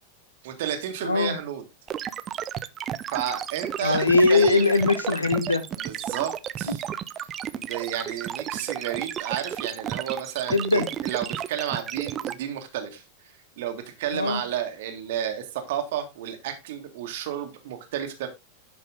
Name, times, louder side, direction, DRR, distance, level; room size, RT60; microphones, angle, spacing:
voice 1, 0.4-1.6 3.1-4.6 5.8-6.8 7.5-13.0 13.6-18.3, right 10 dB, 55° right, 1.7 m, -32 dB
voice 2, 1.0-1.4 3.8-5.7 6.7-6.8 10.5-10.9 14.1-14.4, left 3 dB, 80° left, 1.0 m, -21 dB
sound 1, 1.9-12.3, right 9 dB, 30° right, 0.6 m, -32 dB
11.0 x 5.4 x 3.7 m
figure-of-eight pair, 90°, 0 cm